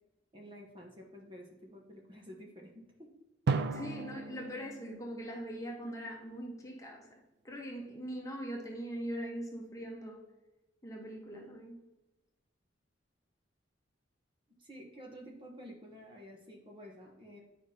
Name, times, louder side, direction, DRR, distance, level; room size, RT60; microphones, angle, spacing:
voice 1, 0.3-2.7 3.0-3.1 14.5-17.4, equal, 25° right, 0 dB, 1.1 m, -51 dB
Drum, 3.5-6.2, right 4 dB, 55° right, 0.3 m, -36 dB
voice 2, 3.7-10.2 10.8-11.8, equal, 15° left, -1 dB, 1.1 m, -41 dB
10.0 x 5.1 x 2.8 m, 1.0 s
head